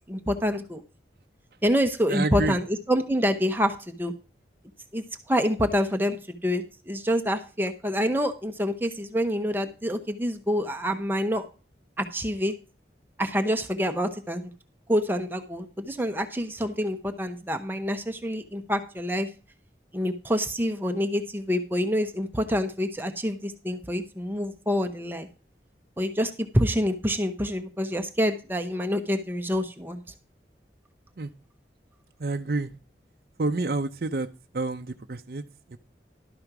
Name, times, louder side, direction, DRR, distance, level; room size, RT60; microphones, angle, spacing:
voice 1, 0.1-0.8 1.6-4.1 4.9-11.4 12.0-12.5 13.2-14.5 14.9-19.3 19.9-25.3 26.0-30.0, equal, 10° right, 6 dB, 0.7 m, -27 dB
voice 2, 2.1-2.6 31.2-31.3 32.2-32.7 33.4-35.8, right 3 dB, 55° right, 6 dB, 0.6 m, -29 dB
12.0 x 5.2 x 5.9 m, 0.35 s
head